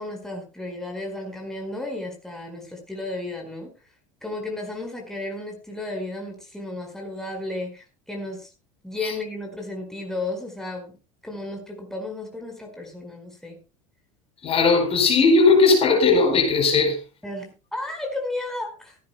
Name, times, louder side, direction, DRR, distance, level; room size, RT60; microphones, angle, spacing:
voice 1, 0.0-3.7 4.2-8.5 8.8-10.9 11.2-13.6 17.2-19.0, left 2 dB, 5° left, 4.9 m, -33 dB
voice 2, 14.4-17.0, left 4 dB, 35° left, 4.6 m, -18 dB
17.0 x 16.0 x 2.2 m
figure-of-eight pair, 75°, 17 cm